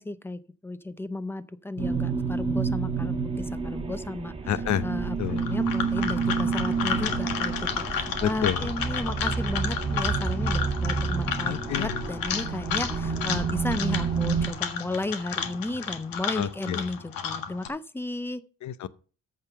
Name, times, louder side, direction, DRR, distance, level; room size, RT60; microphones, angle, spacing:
voice 1, 0.0-4.3 4.8-18.4, left 2 dB, 5° left, 0.4 m, -34 dB
sound 1, 1.8-14.5, right 5 dB, 15° right, 1.1 m, -29 dB
voice 2, 4.5-4.8 5.2-5.4 8.2-8.7 11.4-12.0 16.3-16.9 18.6-18.9, left 11 dB, 55° left, 0.7 m, -29 dB
sound 2, 5.3-17.7, left 7 dB, 80° left, 1.5 m, -32 dB
14.0 x 5.3 x 5.6 m
cardioid pair, 165°, 34 cm